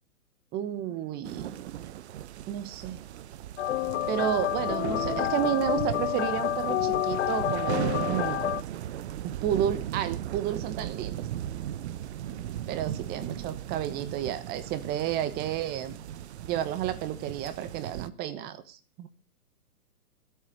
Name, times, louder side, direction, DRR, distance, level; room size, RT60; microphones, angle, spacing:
voice 1, 0.5-1.5 2.5-3.0 4.1-8.4 9.2-11.3 12.3-12.4 12.7-15.9 16.5-19.1, right 10 dB, 20° right, 12 dB, 1.2 m, -31 dB
sound 1, 1.2-18.1, right 11 dB, 45° right, 0.8 m, -37 dB
sound 2, 3.6-8.6, left 13 dB, 50° left, 0.6 m, -29 dB
14.0 x 8.5 x 7.5 m, 0.37 s
hypercardioid pair, 140°, 45 cm